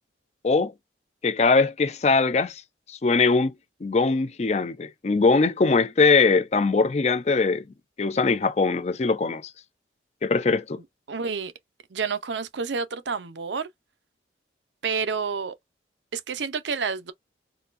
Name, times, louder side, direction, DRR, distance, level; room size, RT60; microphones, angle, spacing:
voice 1, 1.2-2.6 2.9-3.5 3.8-7.6 8.0-9.4 10.2-10.8, left 4 dB, 35° left, 0.4 m, -21 dB
voice 2, 11.1-11.5 11.9-13.7 14.8-15.5 16.1-17.1, right 5 dB, 85° right, 0.6 m, -29 dB
4.0 x 2.3 x 2.5 m
head